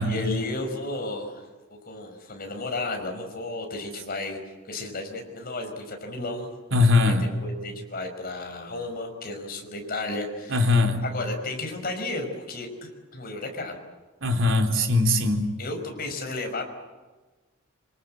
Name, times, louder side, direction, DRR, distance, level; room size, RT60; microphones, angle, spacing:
voice 1, 0.0-1.4 1.8-4.4 4.7-6.5 7.1-13.8 15.6-16.7, left 2 dB, 45° left, 4 dB, 5.4 m, -33 dB
voice 2, 6.7-7.3 10.5-11.0 14.2-15.5, left 3 dB, 65° right, 4 dB, 3.8 m, -21 dB
26.0 x 25.5 x 7.8 m, 1.3 s
head